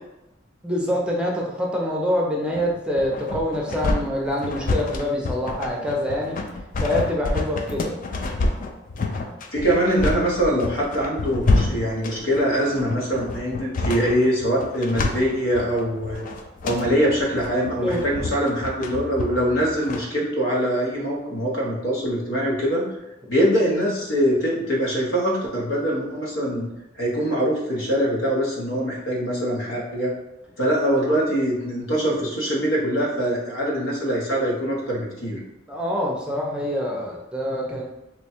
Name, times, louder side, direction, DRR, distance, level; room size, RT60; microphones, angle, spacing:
voice 1, 0.6-6.4 6.8-7.9 17.8-18.0 35.7-37.8, left 1 dB, 5° right, -2 dB, 0.5 m, -25 dB
sound 1, 2.5-20.0, left 2 dB, 45° left, 0.4 m, -28 dB
voice 2, 9.5-16.3 16.6-22.8 23.3-26.7 27.0-30.1 30.6-35.4, equal, 90° left, -3 dB, 1.1 m, -23 dB
3.0 x 2.3 x 4.3 m, 0.92 s
head